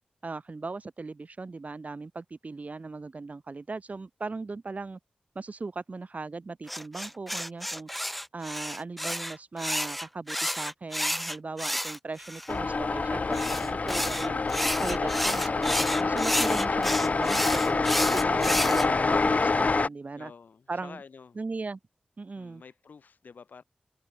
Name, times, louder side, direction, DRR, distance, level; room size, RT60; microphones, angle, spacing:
voice 1, 0.2-5.0 5.3-7.9 8.3-14.4 14.8-20.3 20.7-21.0 21.4-21.8 22.2-22.6, right 3 dB, 55° right, 2.6 m, -38 dB
sound 1, 6.7-12.5 13.3-18.9, equal, 5° left, 0.4 m, -31 dB
sound 2, 12.5-19.9, left 3 dB, 60° left, 0.9 m, -26 dB
voice 2, 20.2-21.4 22.4-23.6, left 5 dB, 85° left, 6.9 m, -49 dB
cardioid pair, 45°, 3 cm